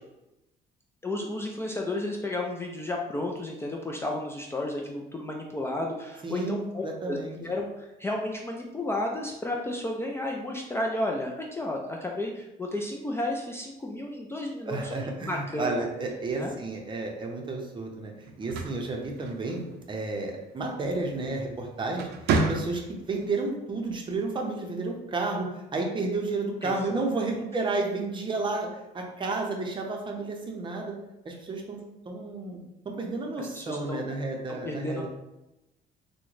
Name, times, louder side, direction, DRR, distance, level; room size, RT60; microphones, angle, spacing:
voice 1, 1.0-15.9 16.3-16.5 26.6-27.0 33.4-34.1 34.5-35.1, left 1 dB, 15° left, 0 dB, 0.3 m, -32 dB
voice 2, 6.2-7.4 14.7-22.1 22.5-25.5 25.7-30.9 31.2-31.8 32.1-32.6 32.8-35.1, right 3 dB, 30° right, 1 dB, 0.6 m, -31 dB
sound 1, 18.3-19.8 21.3-21.5 21.9-23.1, right 4 dB, 75° right, 0.5 m, -29 dB
3.6 x 2.1 x 3.1 m, 0.93 s
cardioid pair, 110°, 17 cm